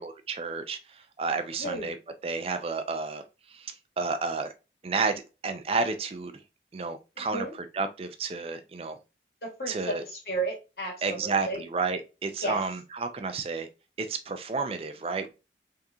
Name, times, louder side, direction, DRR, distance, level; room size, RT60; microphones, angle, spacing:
voice 1, 0.0-2.0 2.2-3.2 3.5-4.5 4.8-6.3 6.7-9.0 9.7-10.0 11.0-13.7 14.0-15.3, right 4 dB, 35° right, 0.4 m, -31 dB
voice 2, 7.2-7.5 9.4-11.6 12.4-12.6, right 2 dB, 65° left, 1.9 m, -33 dB
3.7 x 3.5 x 2.7 m
head